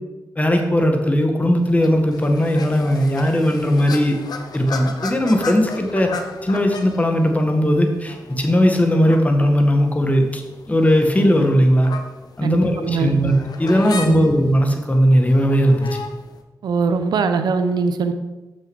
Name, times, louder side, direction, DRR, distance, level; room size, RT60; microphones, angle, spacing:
voice 1, 0.4-4.2 4.5-6.1 6.4-10.4 10.7-11.9 12.4-13.3 13.6-15.9, equal, 20° left, 4 dB, 1.7 m, -17 dB
sound 1, 1.6-16.4, left 4 dB, 70° left, 1.0 m, -36 dB
voice 2, 12.4-13.1 14.0-14.3 16.6-18.1, right 5 dB, 85° right, 9 dB, 0.8 m, -21 dB
7.0 x 6.5 x 6.3 m, 1.1 s
cardioid pair, 60°, 7 cm